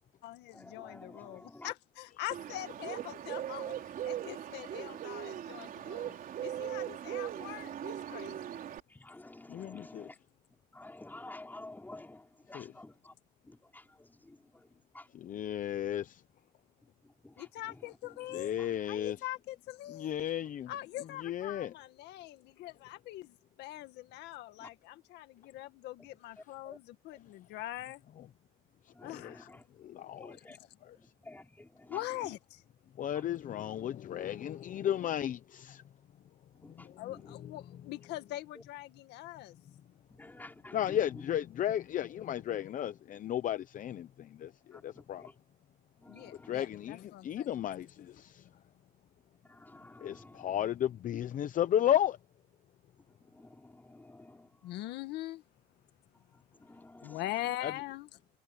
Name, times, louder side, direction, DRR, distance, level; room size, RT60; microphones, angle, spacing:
voice 1, 0.0-6.2 6.4-8.6 17.4-18.5 18.8-20.1 20.7-28.0 29.0-29.5 31.9-32.6 37.0-39.6 46.1-47.5 54.6-55.4 57.0-58.1, left 15 dB, 85° left, 1.9 m, -43 dB
voice 2, 0.5-1.7 8.9-10.1 10.7-13.1 13.5-14.4 14.9-15.1 17.2-17.4 18.6-18.7 24.6-24.7 26.6-26.8 28.9-29.6 30.1-30.6 31.0-32.0 36.6-36.9 40.1-41.0 44.7-45.3 46.0-46.6 49.5-50.6 53.3-54.5 56.6-57.2, left 2 dB, 10° left, 4.8 m, -51 dB
Bird, 2.3-8.8, right 10 dB, 55° right, 4.2 m, -39 dB
voice 3, 9.5-10.1 12.5-12.7 15.1-16.2 18.3-19.2 19.9-20.7 21.2-21.7 29.0-29.3 29.8-30.4 30.8-31.0 33.0-35.8 36.7-37.1 37.4-37.5 40.7-45.3 46.4-48.4 50.0-52.2 57.6-57.7, left 11 dB, 50° left, 0.9 m, -34 dB
cardioid pair, 110°, 17 cm